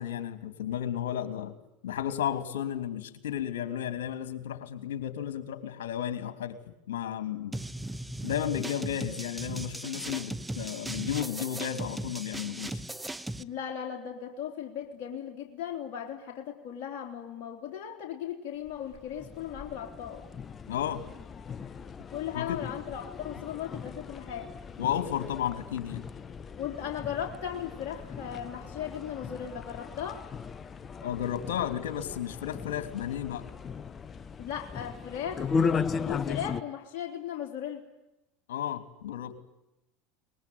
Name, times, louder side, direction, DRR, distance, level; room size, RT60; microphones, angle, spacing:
voice 1, 0.0-1.5 1.8-6.6 6.9-7.6 8.2-12.8 20.7-21.0 22.3-22.6 24.8-26.0 31.0-33.5 38.5-39.4, left 10 dB, 75° left, 11 dB, 3.0 m, -33 dB
sound 1, 7.5-13.4, right 1 dB, 5° right, 1.0 m, -37 dB
voice 2, 13.4-20.3 22.1-24.5 26.6-30.3 34.4-35.5 35.9-37.8, left 9 dB, 55° left, 0 dB, 3.5 m, -37 dB
sound 2, 18.7-36.6, left 5 dB, 30° left, 1.0 m, -37 dB
23.0 x 21.0 x 9.5 m, 0.90 s
hypercardioid pair, 80°, 0 cm